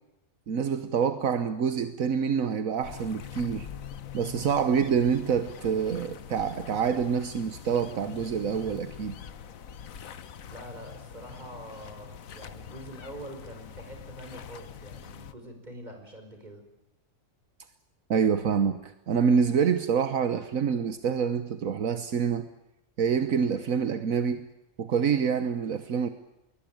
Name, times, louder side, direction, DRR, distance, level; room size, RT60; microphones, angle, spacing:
voice 1, 0.5-3.7 4.1-9.2 18.1-22.5 23.0-24.5 24.8-26.1, right 6 dB, 75° right, 10 dB, 1.5 m, -26 dB
sound 1, 2.8-15.3, left 8 dB, 80° left, 1.5 m, -44 dB
voice 2, 10.5-16.6, right 1 dB, 30° right, 5 dB, 5.4 m, -45 dB
21.5 x 20.5 x 8.9 m, 0.91 s
omnidirectional pair, 1.4 m